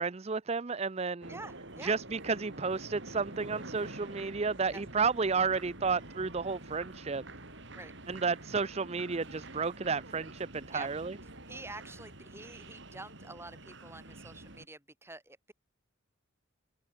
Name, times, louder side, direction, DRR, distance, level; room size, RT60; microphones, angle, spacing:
voice 1, 0.0-1.4 1.8-7.2 8.1-11.2, right 5 dB, 30° right, 0.5 m, -32 dB
sound 1, 1.2-14.7, right 2 dB, 55° right, 6.0 m, -47 dB
voice 2, 1.3-2.0 4.7-4.8 7.7-7.9 10.7-10.9 11.5-15.5, right 2 dB, 10° right, 4.9 m, -47 dB
head